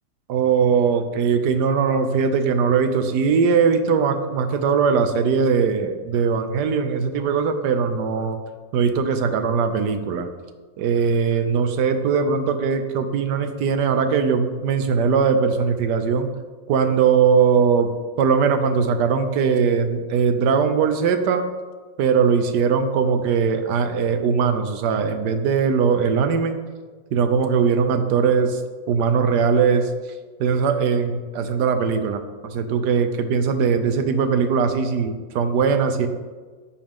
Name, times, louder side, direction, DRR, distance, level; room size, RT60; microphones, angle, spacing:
voice 1, 0.3-8.4 8.7-10.3 10.8-16.3 16.7-17.9 18.2-21.5 22.0-26.6 27.1-28.6 28.9-30.1 30.4-36.1, right 6 dB, 70° right, 8 dB, 1.3 m, -20 dB
13.5 x 4.9 x 3.6 m, 1.4 s
omnidirectional pair, 2.0 m